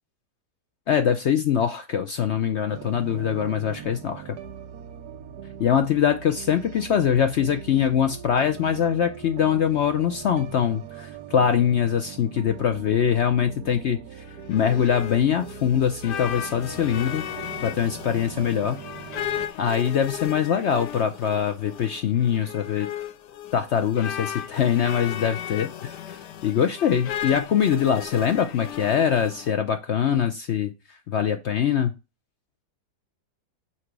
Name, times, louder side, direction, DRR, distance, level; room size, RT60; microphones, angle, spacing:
voice 1, 0.9-4.2 5.6-14.0 14.5-17.2 17.6-18.8 19.6-22.9 23.5-26.2 26.4-30.7 31.1-31.9, left 8 dB, 70° left, 9 dB, 0.6 m, -23 dB
sound 1, 2.7-19.5, right 8 dB, 75° right, 1.2 m, -41 dB
sound 2, 14.2-29.5, left 10 dB, 90° left, 1.3 m, -36 dB
6.0 x 3.9 x 4.6 m, 0.26 s
omnidirectional pair, 1.8 m